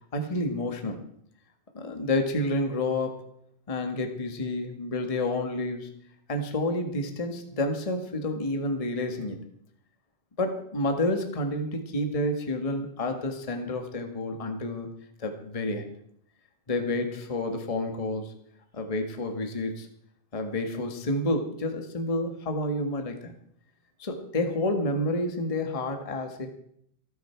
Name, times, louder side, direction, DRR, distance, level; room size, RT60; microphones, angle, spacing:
voice 1, 0.1-1.0 1.7-3.2 3.7-5.9 6.3-9.4 10.4-14.9 15.2-15.9 16.7-18.3 18.7-19.9 20.3-23.3 24.0-26.5, left 1 dB, 40° left, 5 dB, 0.5 m, -29 dB
27.5 x 9.3 x 4.6 m, 0.69 s
omnidirectional pair, 3.8 m